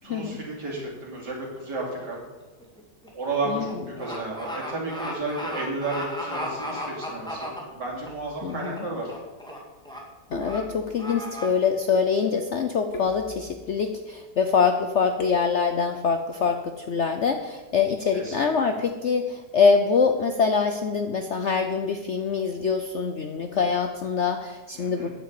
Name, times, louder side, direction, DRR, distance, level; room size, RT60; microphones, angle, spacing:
voice 1, 0.0-2.2 3.1-9.1 18.1-18.7 24.8-25.1, right 2 dB, 65° right, -3 dB, 3.7 m, -32 dB
sound 1, 2.0-2.3 2.6-8.1 8.5-8.8 9.1-9.6 9.9-10.0 10.4-10.6 11.0-11.5, equal, ahead, 2.0 m, -35 dB
sound 2, 7.9-8.5 10.3-11.3 12.9-13.9 15.2-15.9, left 1 dB, 45° left, 1.6 m, -41 dB
voice 2, 8.4-8.9 10.3-25.1, left 5 dB, 60° left, 6 dB, 0.8 m, -24 dB
9.1 x 7.5 x 8.4 m, 1.2 s
omnidirectional pair, 1.9 m